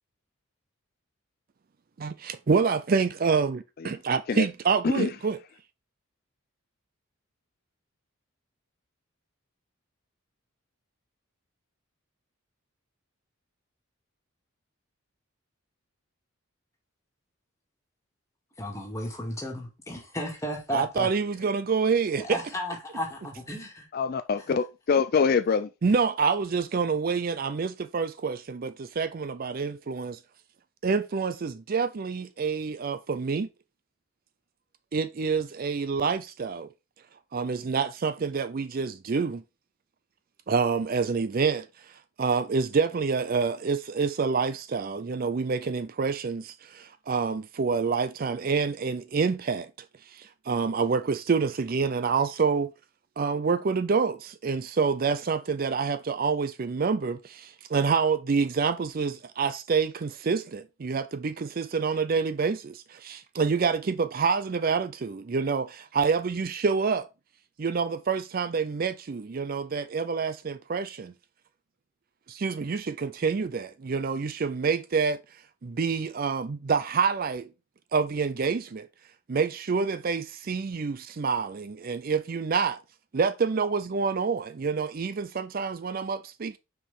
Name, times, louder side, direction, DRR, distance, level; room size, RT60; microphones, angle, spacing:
voice 1, 2.0-5.4 20.7-22.4 25.8-30.2 30.8-33.5 34.9-36.7 37.3-39.4 40.5-49.7 50.1-52.7 53.2-67.1 67.6-71.1 72.3-75.2 75.6-77.5 77.9-78.9 79.3-82.8 83.1-86.6, right 5 dB, 40° right, 0.4 m, -27 dB
voice 2, 4.8-5.1 23.9-25.7, left 5 dB, 45° left, 0.3 m, -25 dB
voice 3, 18.6-21.1 21.4-21.5 22.2-23.9, left 1 dB, 15° left, 2.1 m, -34 dB
6.0 x 4.8 x 4.3 m
head